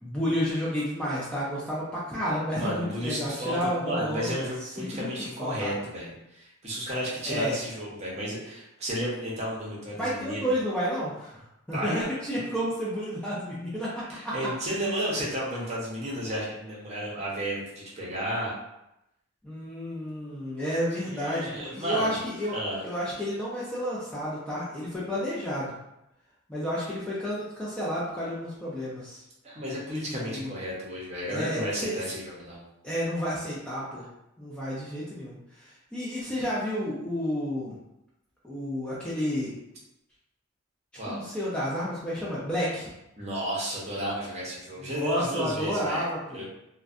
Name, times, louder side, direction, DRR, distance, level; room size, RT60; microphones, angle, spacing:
voice 1, 0.0-5.1 5.4-5.7 7.3-7.6 9.9-11.4 11.7-14.3 14.7-14.8 19.4-22.6 22.8-25.7 26.5-29.2 30.1-30.5 31.3-31.9 32.8-34.0 34.4-37.8 38.4-39.5 41.1-42.9 44.8-46.4, equal, 5° left, -8 dB, 0.4 m, -31 dB
voice 2, 2.5-10.6 11.7-12.0 12.3-12.5 14.1-18.5 21.0-22.2 22.5-22.8 29.4-32.6 41.0-41.3 43.2-46.1 46.3-46.4, equal, 35° right, -5 dB, 0.7 m, -33 dB
2.5 x 2.1 x 2.4 m, 0.87 s
head